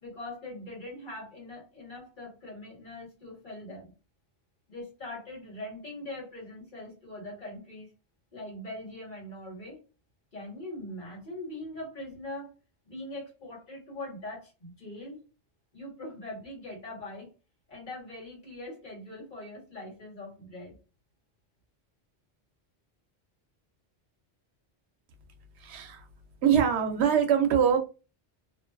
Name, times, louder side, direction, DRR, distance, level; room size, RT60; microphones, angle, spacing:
voice 1, 0.0-3.9 4.7-7.9 8.3-9.8 10.3-12.5 12.9-15.2 15.7-17.3 17.7-20.8, left 1 dB, 50° left, -3 dB, 1.3 m, -42 dB
voice 2, 25.6-26.1 26.4-27.8, right 8 dB, 85° right, 6 dB, 0.9 m, -23 dB
2.5 x 2.2 x 2.2 m, 0.32 s
omnidirectional pair, 1.1 m